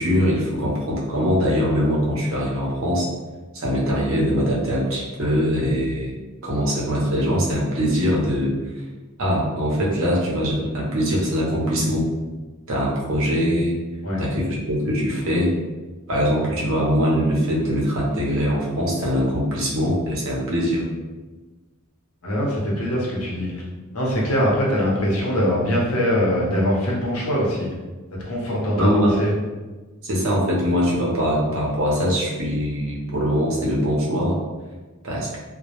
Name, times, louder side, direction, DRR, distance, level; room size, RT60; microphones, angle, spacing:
voice 1, 0.0-3.1 3.5-6.2 6.4-8.5 9.2-12.1 12.7-13.8 14.2-15.5 16.1-20.9 28.8-29.2 30.0-34.4 35.0-35.3, equal, 65° right, -4 dB, 0.7 m, -22 dB
voice 2, 22.2-23.5 23.9-27.7 28.1-29.3, equal, 80° left, -4 dB, 0.7 m, -22 dB
2.1 x 2.0 x 2.9 m, 1.3 s
head